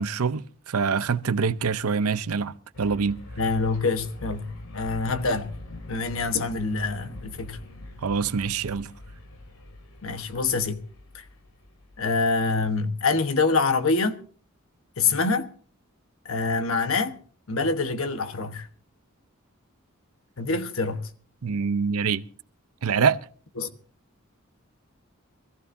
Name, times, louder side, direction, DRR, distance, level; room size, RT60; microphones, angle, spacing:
voice 1, 0.0-3.2 8.0-8.9 21.4-22.2 22.8-23.2, right 5 dB, 90° right, 0.6 m, -25 dB
Flanger bomber, 2.7-12.7, left 1 dB, 90° left, 2.5 m, -43 dB
voice 2, 3.4-5.5 5.9-7.6 10.0-10.8 11.1-11.2 12.0-14.2 15.0-15.5 16.2-17.2 17.5-18.7 20.4-21.1 23.6-23.7, left 4 dB, 65° left, 1.2 m, -25 dB
24.0 x 15.0 x 2.6 m
head